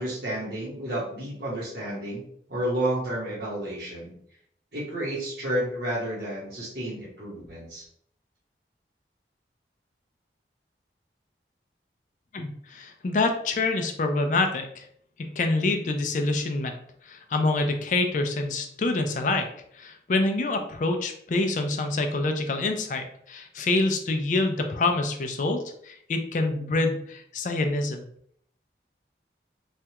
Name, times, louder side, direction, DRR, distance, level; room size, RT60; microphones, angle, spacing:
voice 1, 0.0-2.2 2.5-4.1 4.7-7.8, right 1 dB, 60° right, -7 dB, 1.0 m, -31 dB
voice 2, 12.3-14.8 15.2-16.8 17.1-19.5 19.7-28.0, left 2 dB, 45° left, 5 dB, 0.4 m, -26 dB
3.2 x 2.3 x 2.8 m, 0.66 s
head